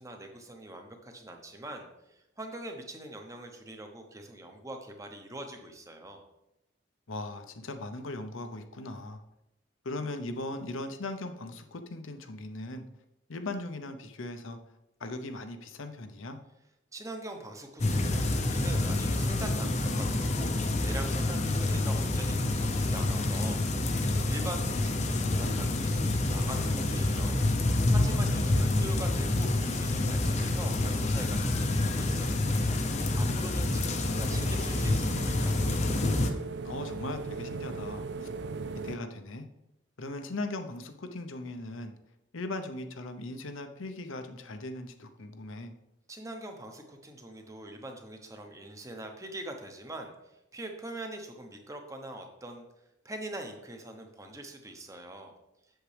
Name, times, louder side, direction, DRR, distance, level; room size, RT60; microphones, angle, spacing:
voice 1, 0.0-6.2 16.9-27.4 27.9-32.4 33.1-35.6 46.1-52.6 53.0-55.3, right 1 dB, 15° right, 4 dB, 0.8 m, -43 dB
voice 2, 7.1-9.2 9.8-12.8 13.3-14.6 15.0-16.4 28.1-28.7 33.5-34.4 36.6-38.3 38.8-39.5 40.0-42.0 42.3-45.7, left 2 dB, 75° left, 7 dB, 0.8 m, -39 dB
sound 1, 17.8-36.3, left 2 dB, 35° left, 0.7 m, -28 dB
sound 2, 32.8-39.0, right 4 dB, 55° right, 0.4 m, -40 dB
7.9 x 7.4 x 3.4 m, 0.88 s
head